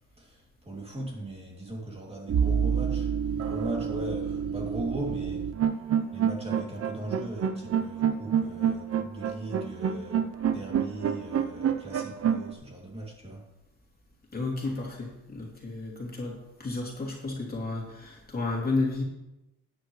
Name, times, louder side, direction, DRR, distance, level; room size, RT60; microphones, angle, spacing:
voice 1, 0.2-5.5 6.1-13.4, right 1 dB, 20° right, -1 dB, 2.8 m, -39 dB
sound 1, 2.3-12.5, right 8 dB, 50° right, 0.8 m, -27 dB
voice 2, 14.3-19.0, left 3 dB, 30° left, -2 dB, 3.0 m, -32 dB
13.0 x 9.6 x 3.2 m, 0.96 s
cardioid pair, 90°, 30 cm